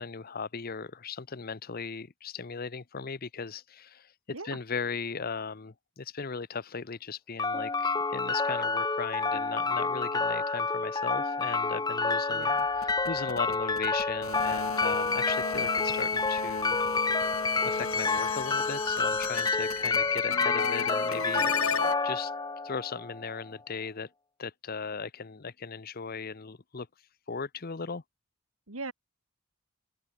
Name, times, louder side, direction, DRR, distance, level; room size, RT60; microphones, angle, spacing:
voice 1, 0.0-4.1 4.4-12.5 12.8-16.8 17.6-21.5 22.0-22.3 22.6-24.1 24.4-26.9 27.3-28.0, left 5 dB, 45° left, 0.8 m, -37 dB
sound 1, 7.4-23.4, left 3 dB, 20° left, 1.3 m, -29 dB
voice 2, 12.3-12.7 28.7-28.9, right 3 dB, 85° right, 3.2 m, -39 dB
sound 2, 12.4-21.9, left 6 dB, 75° left, 2.1 m, -34 dB
open air
head